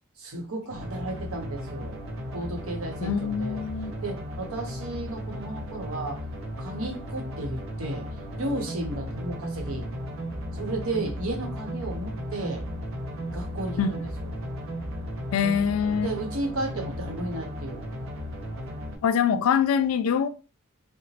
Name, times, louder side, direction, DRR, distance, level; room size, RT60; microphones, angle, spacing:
voice 1, 0.2-2.0 2.3-3.6 4.0-6.2 6.6-8.1 8.4-9.9 10.5-12.6 13.3-14.0 16.0-17.8, right 2 dB, 85° right, 0.8 m, -33 dB
sound 1, 0.7-19.0, equal, 65° right, 0.6 m, -35 dB
voice 2, 3.0-3.9 13.8-13.9 15.3-16.1 19.0-20.3, left 7 dB, 70° left, 0.3 m, -24 dB
2.9 x 2.0 x 2.8 m
head